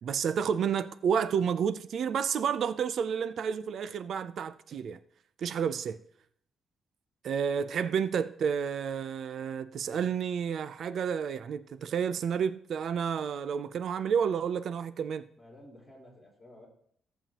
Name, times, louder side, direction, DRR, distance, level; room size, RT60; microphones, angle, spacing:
voice 1, 0.0-5.0 5.4-6.0 7.2-15.3, right 7 dB, 60° right, 0.5 m, -30 dB
voice 2, 15.4-16.7, left 1 dB, 5° left, 3.9 m, -53 dB
16.5 x 7.1 x 2.9 m
cardioid pair, 125°, 0 cm